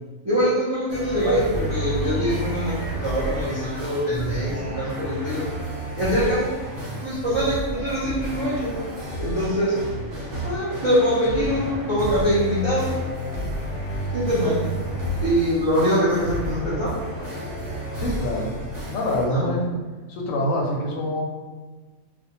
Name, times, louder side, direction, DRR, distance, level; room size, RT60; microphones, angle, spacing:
voice 1, 0.2-5.4 6.0-6.5 7.0-8.7 9.2-9.8 10.4-13.0 14.1-14.7 15.2-16.9 19.3-19.6, equal, 40° right, -10 dB, 0.4 m, -23 dB
sound 1, 0.9-19.3, equal, 70° right, 1.1 m, -30 dB
voice 2, 17.9-18.5 18.9-19.7 20.1-21.2, left 1 dB, 80° left, -1 dB, 1.0 m, -25 dB
2.6 x 2.1 x 2.8 m, 1.3 s
omnidirectional pair, 1.4 m